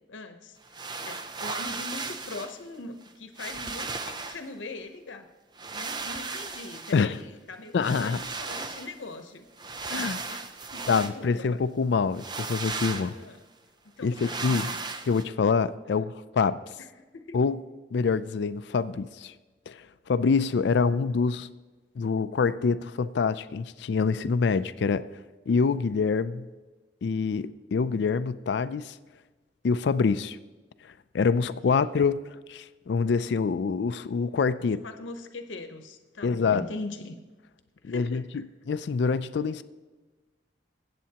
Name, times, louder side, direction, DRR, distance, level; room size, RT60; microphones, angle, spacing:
voice 1, 0.1-5.3 5.7-9.4 10.3-11.5 13.1-13.4 14.0-14.8 15.8-16.0 17.0-17.4 31.7-31.9 34.6-37.2 37.8-38.4, left 2 dB, 90° left, 7 dB, 0.9 m, -41 dB
sound 1, 0.6-2.6 3.1-3.2 3.4-4.5 5.6-7.2 7.8-9.0 9.6-11.2 12.2-13.2 14.1-15.2, right 4 dB, 25° right, 0.5 m, -36 dB
voice 2, 7.7-8.2 9.9-10.3 10.9-13.1 14.0-14.7 15.1-16.7 17.3-17.6 17.9-19.3 19.7-21.5 22.0-25.1 25.5-26.4 27.0-29.0 29.6-30.4 31.1-34.8 36.2-36.7 37.8-39.6, left 5 dB, 65° left, 14 dB, 0.4 m, -26 dB
21.5 x 8.3 x 2.9 m, 1.2 s
head